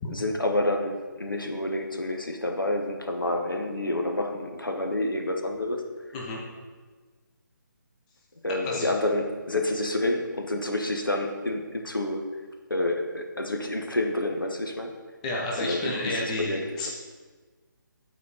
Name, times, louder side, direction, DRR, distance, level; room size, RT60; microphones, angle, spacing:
voice 1, 0.1-5.8 8.4-12.2 12.7-14.9 15.6-16.9, left 1 dB, 80° left, 3 dB, 1.1 m, -28 dB
voice 2, 15.2-16.9, left 2 dB, 20° left, -3 dB, 0.9 m, -31 dB
8.3 x 4.3 x 4.2 m, 1.4 s
figure-of-eight pair, 145°, 11 cm